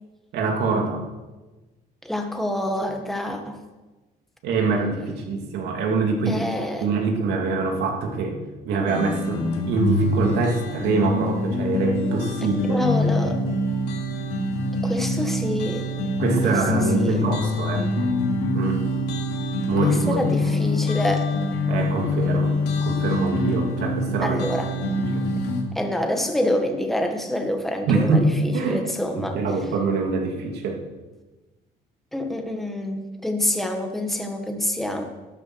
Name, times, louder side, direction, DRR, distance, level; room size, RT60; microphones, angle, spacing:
voice 1, 0.3-1.0 4.4-6.4 6.8-8.4 8.6-12.8 16.2-17.9 18.5-18.9 19.7-20.8 21.7-22.5 22.8-24.4 24.8-25.3 27.9-28.9 29.1-30.8, right 4 dB, 80° right, 2 dB, 2.8 m, -24 dB
voice 2, 2.0-3.6 6.3-6.8 12.4-13.4 14.8-15.9 16.4-16.5 17.0-17.2 19.8-21.3 24.2-24.7 25.7-29.4 32.1-35.0, left 1 dB, ahead, 3 dB, 1.6 m, -27 dB
sound 1, 8.9-25.6, left 2 dB, 80° left, 3.0 m, -25 dB
12.5 x 9.9 x 6.4 m, 1.2 s
cardioid pair, 110°, 17 cm